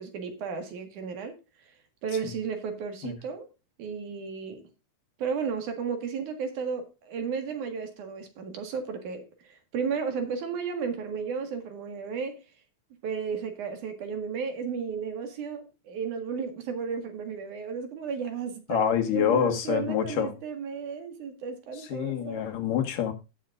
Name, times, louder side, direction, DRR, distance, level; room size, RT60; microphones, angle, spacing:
voice 1, 0.0-1.3 2.0-3.5 3.8-4.7 5.2-12.4 13.0-22.5, right 6 dB, 70° right, 3.2 m, -34 dB
voice 2, 18.7-20.3 21.9-23.1, left 9 dB, 90° left, 3.2 m, -26 dB
17.5 x 6.4 x 2.5 m
omnidirectional pair, 3.7 m